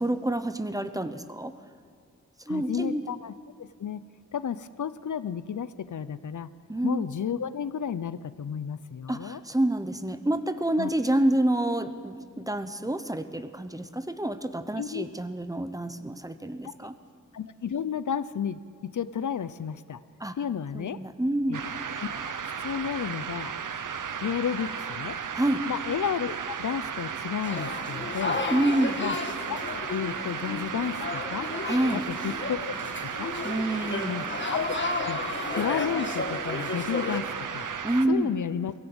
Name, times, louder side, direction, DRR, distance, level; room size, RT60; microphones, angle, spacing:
voice 1, 0.0-1.5 2.5-3.2 6.7-7.1 9.1-16.9 20.2-20.4 20.7-21.6 25.3-25.7 28.5-29.0 31.7-32.0 33.4-34.1 37.8-38.3, right 1 dB, 10° right, 11 dB, 0.9 m, -28 dB
voice 2, 2.5-3.3 3.6-4.0 4.3-6.5 6.8-9.4 10.8-10.9 14.8-15.1 17.3-20.0 20.4-21.0 21.5-21.6 22.0-22.2 22.6-23.5 24.2-25.2 25.7-28.4 29.0-29.2 29.5-29.6 29.9-31.5 31.9-32.7 33.0-33.3 34.1-34.7 35.0-35.2 35.5-37.7 38.1-38.7, left 8 dB, 70° left, 15 dB, 0.7 m, -32 dB
sound 1, 21.5-38.1, right 7 dB, 85° right, 0.9 m, -35 dB
sound 2, 27.4-37.2, left 3 dB, 35° left, 1.4 m, -33 dB
23.5 x 16.0 x 8.0 m, 2.1 s
wide cardioid pair, 125°, 31 cm